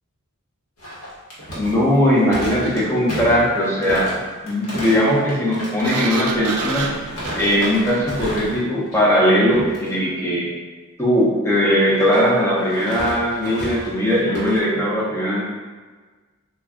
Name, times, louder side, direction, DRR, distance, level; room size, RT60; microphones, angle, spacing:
sound 1, 0.8-8.6 8.9-9.2 9.5-9.9 11.9-14.6, equal, 70° left, 0.9 m, -33 dB
voice 1, 1.6-4.1 4.4-6.9 7.4-10.5 11.0-15.4, equal, 10° left, -6 dB, 0.6 m, -19 dB
Sliding door, 5.8-8.6, right 4 dB, 80° right, 0.4 m, -28 dB
2.2 x 2.2 x 3.6 m, 1.3 s
head